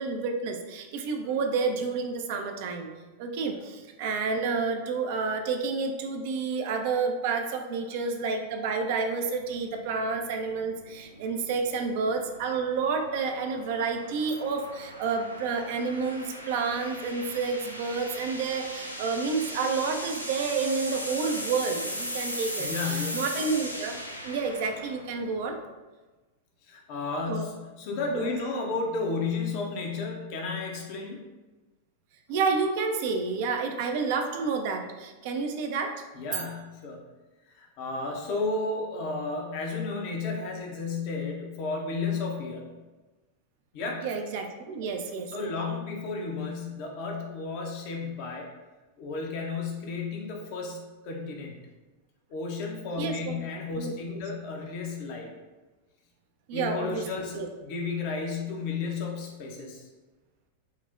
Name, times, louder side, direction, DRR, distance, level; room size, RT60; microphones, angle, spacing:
voice 1, 0.0-2.9 3.2-24.0 24.2-25.6 27.3-27.5 28.1-28.4 32.3-35.9 36.3-36.4 44.0-45.5 53.0-53.4 53.8-54.2 56.5-57.5, right 4 dB, 50° right, 5 dB, 0.3 m, -30 dB
sound 1, 9.4-25.6, equal, 90° left, 0.3 m, -38 dB
voice 2, 22.6-23.2 26.7-31.2 36.1-37.0 37.5-42.7 43.7-44.1 45.3-48.5 49.0-51.6 52.3-55.3 56.5-59.9, left 4 dB, 45° left, 0 dB, 0.6 m, -33 dB
4.2 x 2.0 x 2.4 m, 1.2 s
figure-of-eight pair, 90°, 0 cm